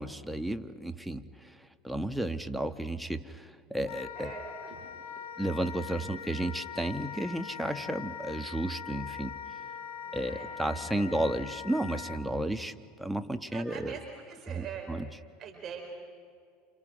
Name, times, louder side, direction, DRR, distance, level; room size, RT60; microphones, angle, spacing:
voice 1, 0.0-1.5 1.8-4.3 5.4-9.3 10.1-12.7 13.0-14.0 14.6-15.1, right 1 dB, ahead, 8 dB, 1.3 m, -33 dB
Wind instrument woodwind instrument, 3.8-12.2, left 7 dB, 70° left, 1.2 m, -42 dB
voice 2, 4.1-4.8 5.8-6.0 10.0-11.3 13.5-14.9 15.4-15.8, right 7 dB, 40° right, 2 dB, 5.1 m, -44 dB
28.5 x 28.0 x 6.3 m, 2.1 s
hypercardioid pair, 80°, 0 cm